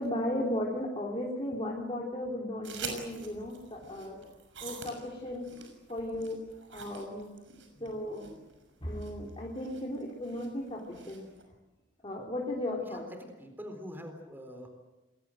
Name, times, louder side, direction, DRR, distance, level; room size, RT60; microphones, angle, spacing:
voice 1, 0.0-4.3 4.6-5.5 5.9-6.4 6.7-7.3 7.8-8.4 8.8-11.3 12.0-13.0, left 1 dB, 30° left, -2 dB, 3.7 m, -35 dB
sound 1, 2.6-11.4, right 5 dB, 85° right, 6.2 m, -46 dB
voice 2, 12.9-14.7, equal, 10° right, 5 dB, 3.9 m, -44 dB
29.0 x 21.5 x 7.8 m, 1.1 s
head